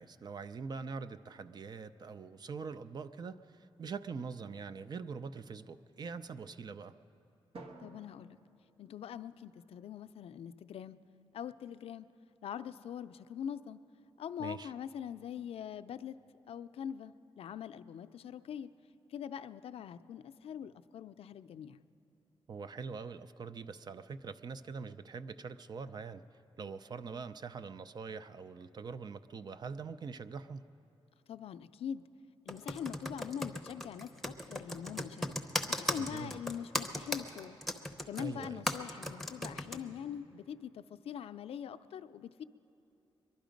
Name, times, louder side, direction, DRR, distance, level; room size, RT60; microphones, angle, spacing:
voice 1, 0.0-6.9 14.4-14.7 22.5-26.2 26.6-30.6 36.0-36.4 38.2-38.7, right 5 dB, 45° right, 12 dB, 0.4 m, -43 dB
Drum, 7.5-9.8, right 2 dB, 70° right, 1.1 m, -54 dB
voice 2, 7.8-8.4 8.8-11.0 11.3-12.1 12.4-13.8 14.2-16.2 16.5-18.7 19.1-21.8 31.3-32.0 32.5-35.3 35.7-37.6 38.1-42.4, left 8 dB, 80° left, 12 dB, 0.4 m, -43 dB
Computer keyboard, 32.5-39.8, left 1 dB, ahead, 0.7 m, -36 dB
23.0 x 11.5 x 5.1 m, 2.9 s
wide cardioid pair, 140°, 10 cm